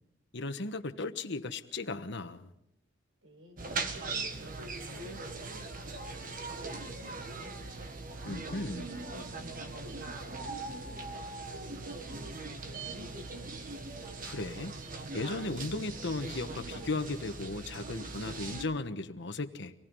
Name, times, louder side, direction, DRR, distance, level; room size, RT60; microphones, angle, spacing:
voice 1, 0.3-2.5 8.2-8.9 14.2-14.7 15.1-19.7, left 2 dB, 60° left, 9 dB, 1.3 m, -36 dB
voice 2, 3.2-7.6 8.3-11.1 11.3-13.4, right 1 dB, 90° right, 3 dB, 5.8 m, -52 dB
sound 1, 3.6-18.7, right 3 dB, 45° right, 1.6 m, -40 dB
26.0 x 19.0 x 5.5 m, 0.79 s
head